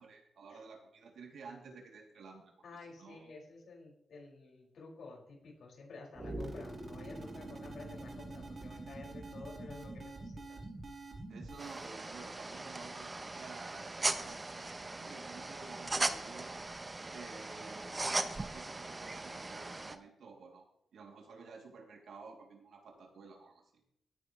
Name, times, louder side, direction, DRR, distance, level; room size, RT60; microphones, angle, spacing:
voice 1, 0.0-2.5 3.0-3.3 11.3-16.6 17.1-20.7 20.9-23.8, right 4 dB, 75° right, 1 dB, 2.8 m, -52 dB
voice 2, 2.6-10.6, left 3 dB, 65° left, -3 dB, 5.6 m, -51 dB
sound 1, 6.1-11.9, right 2 dB, 40° right, 3.1 m, -45 dB
sound 2, 11.6-19.9, right 2 dB, 20° right, 0.9 m, -39 dB
18.0 x 9.6 x 3.2 m, 0.74 s
wide cardioid pair, 125°, 0 cm